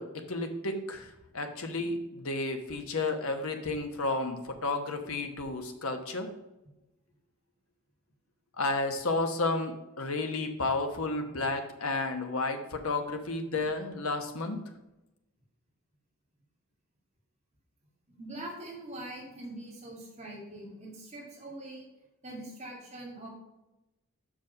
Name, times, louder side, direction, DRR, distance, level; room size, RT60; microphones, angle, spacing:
voice 1, 0.0-6.3 8.6-14.6, left 2 dB, 85° left, 6 dB, 1.1 m, -32 dB
voice 2, 18.1-21.9 22.2-23.3, right 1 dB, 30° right, -2 dB, 2.2 m, -43 dB
6.6 x 5.1 x 5.4 m, 0.97 s
head